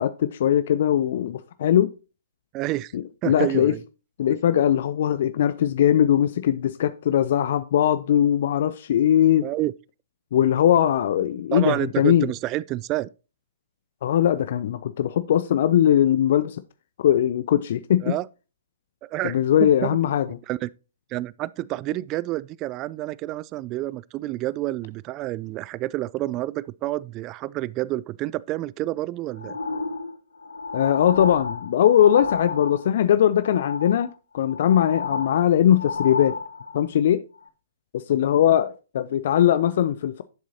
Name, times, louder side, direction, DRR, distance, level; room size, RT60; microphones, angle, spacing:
voice 1, 0.0-1.9 2.9-3.7 4.2-9.5 10.3-12.3 14.0-16.6 17.0-18.1 19.2-20.2 30.7-34.1 34.3-36.3 36.7-37.2 37.9-40.2, left 10 dB, 55° left, 0.5 m, -20 dB
voice 2, 2.5-2.9 3.2-3.8 9.4-9.7 11.5-13.1 18.0-18.3 19.0-20.0 20.5-20.7 21.1-29.6, right 16 dB, 30° right, 0.3 m, -29 dB
sound 1, 29.4-33.1 33.4-34.1 34.4-36.8 37.4-37.5, left 4 dB, 80° left, 1.4 m, -31 dB
11.0 x 7.5 x 2.8 m
figure-of-eight pair, 125°, 0 cm